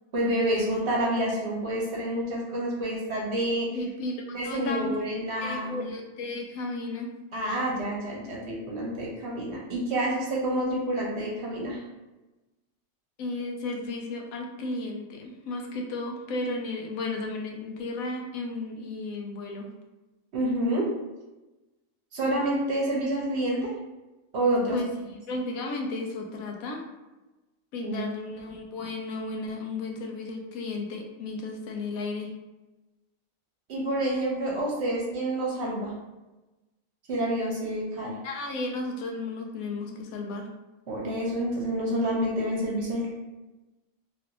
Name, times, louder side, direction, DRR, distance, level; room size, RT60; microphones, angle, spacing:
voice 1, 0.1-3.7 4.3-5.9 7.3-11.8 20.3-20.8 22.1-23.7 24.3-24.8 27.8-28.1 33.7-35.9 37.1-38.1 40.9-43.1, right 1 dB, 60° right, -3 dB, 0.9 m, -28 dB
voice 2, 3.7-4.9 5.4-7.1 13.2-19.7 24.7-26.8 27.7-32.3 38.2-40.5, left 2 dB, 85° left, 2 dB, 1.0 m, -34 dB
3.0 x 2.5 x 2.8 m, 1.1 s
omnidirectional pair, 1.4 m